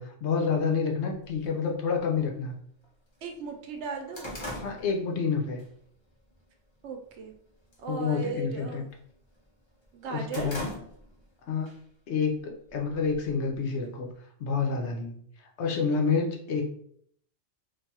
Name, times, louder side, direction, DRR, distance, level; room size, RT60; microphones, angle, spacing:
voice 1, 0.0-2.5 4.6-5.6 7.9-8.8 10.1-10.7 11.5-11.7 12.1-14.1 14.4-15.2 15.6-16.7, left 5 dB, 85° left, 1 dB, 1.0 m, -28 dB
sound 1, 1.3-1.4 2.3-2.4 2.8-2.9 3.3-5.7 6.1-6.4 6.8-7.3 7.6-7.9 8.2-9.4 9.8-11.3 11.7-11.8 12.7-13.6, left 1 dB, 30° left, 0.7 m, -41 dB
voice 2, 3.2-4.4 6.8-7.3 7.8-8.9 9.9-10.5, right 4 dB, 80° right, 4 dB, 0.9 m, -37 dB
2.6 x 2.3 x 4.1 m, 0.65 s
omnidirectional pair, 1.2 m